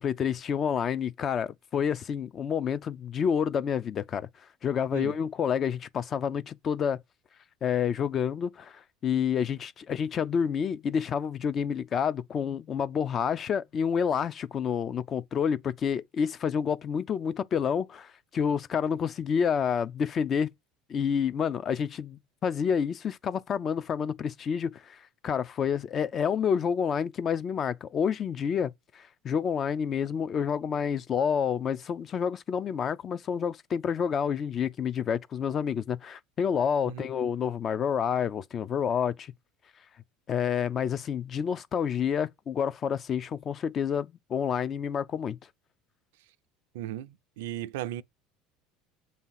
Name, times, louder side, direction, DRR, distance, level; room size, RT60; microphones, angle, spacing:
voice 1, 0.0-4.3 4.6-7.0 7.6-20.5 20.9-39.3 40.3-45.4, left 7 dB, 35° left, 0.4 m, -29 dB
voice 2, 46.7-48.0, right 13 dB, 90° right, 0.4 m, -36 dB
7.2 x 2.8 x 5.6 m
supercardioid pair, 120°, 0 cm